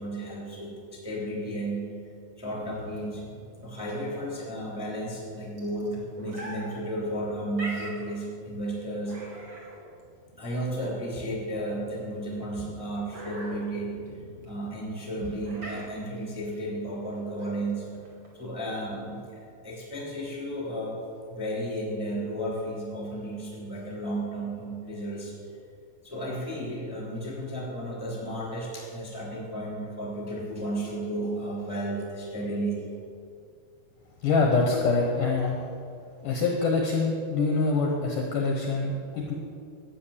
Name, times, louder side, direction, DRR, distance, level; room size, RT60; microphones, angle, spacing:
voice 1, 0.0-1.9 2.4-3.2 3.6-9.2 10.4-14.0 14.5-17.9 18.3-21.0 21.3-25.3 26.0-32.8, right 1 dB, ahead, -3 dB, 2.0 m, -33 dB
sound 1, 2.5-18.4, right 1 dB, 40° right, 1.8 m, -45 dB
voice 2, 34.2-35.7 36.2-39.3, left 3 dB, 70° left, 0 dB, 2.1 m, -25 dB
12.0 x 8.6 x 7.1 m, 2.3 s
omnidirectional pair, 4.9 m